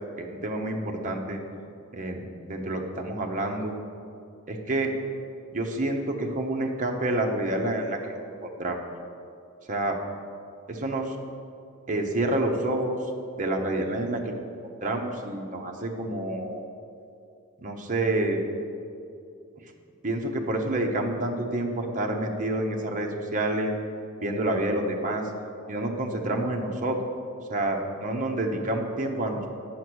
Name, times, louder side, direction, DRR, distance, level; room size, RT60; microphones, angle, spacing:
voice 1, 0.2-1.4 1.9-3.7 4.5-4.9 5.5-8.8 9.7-10.0 10.7-11.2 11.9-13.0 13.4-14.5 14.8-16.6 17.6-18.4 20.0-23.7 24.2-25.2 25.7-27.0 27.5-29.5, right 1 dB, 35° right, 1 dB, 0.9 m, -28 dB
8.3 x 5.9 x 6.2 m, 2.5 s
head